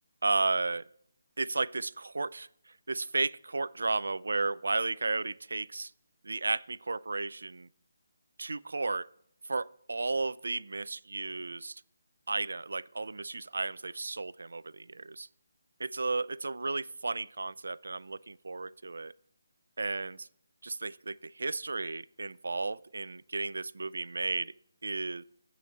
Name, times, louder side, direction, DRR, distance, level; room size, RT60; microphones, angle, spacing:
voice 1, 0.2-0.8 1.4-2.5 2.9-5.9 6.2-7.7 8.4-9.1 9.4-11.8 12.3-15.3 15.8-19.1 19.8-20.3 20.6-24.5 24.8-25.2, right 3 dB, 75° right, 19 dB, 0.4 m, -33 dB
14.5 x 5.8 x 4.1 m, 0.70 s
hypercardioid pair, 170°, 0 cm